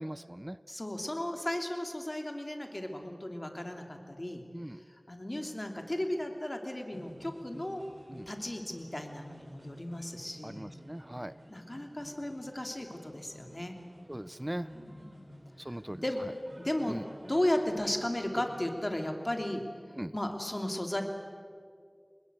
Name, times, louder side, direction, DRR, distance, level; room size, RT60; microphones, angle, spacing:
voice 1, 0.0-0.6 4.5-4.8 8.1-8.3 10.4-11.3 14.1-14.7 15.7-16.0 16.9-17.0 20.0-20.1, right 1 dB, 20° right, 15 dB, 0.6 m, -39 dB
voice 2, 0.7-4.4 5.1-7.9 8.3-10.7 11.5-13.7 14.5-15.3 15.7-16.3 16.6-19.6 20.1-21.0, left 1 dB, 45° left, 4 dB, 2.9 m, -35 dB
sound 1, 6.9-18.7, equal, 90° right, 5.4 m, -53 dB
26.0 x 20.0 x 8.2 m, 2.1 s
wide cardioid pair, 40°, 0 cm